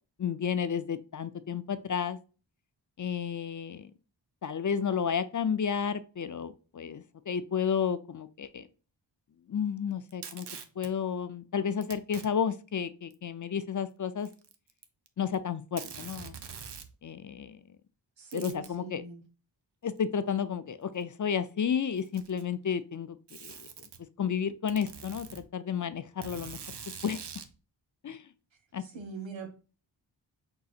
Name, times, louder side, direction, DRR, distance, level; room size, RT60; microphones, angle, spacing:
voice 1, 0.2-2.2 3.0-3.9 4.4-8.6 9.5-10.5 10.8-14.3 15.2-16.4 17.0-17.6 18.3-19.0 19.8-23.6 24.2-26.6 27.0-27.2 28.0-28.3 28.7-28.8, left 7 dB, 40° left, 0.5 m, -32 dB
Packing tape duct tape, 10.1-10.9 11.8-12.3 13.1-13.2 14.2-15.1 15.3-15.4 15.8-16.9 18.3-18.7 20.0-20.1 21.0-21.1 21.9-22.5 23.3-24.0 24.7-25.4 26.2-27.5, right 7 dB, 60° right, 0.8 m, -44 dB
voice 2, 18.2-19.2 28.8-29.6, right 4 dB, 80° right, 1.1 m, -42 dB
4.6 x 3.9 x 2.4 m
cardioid pair, 50°, 45 cm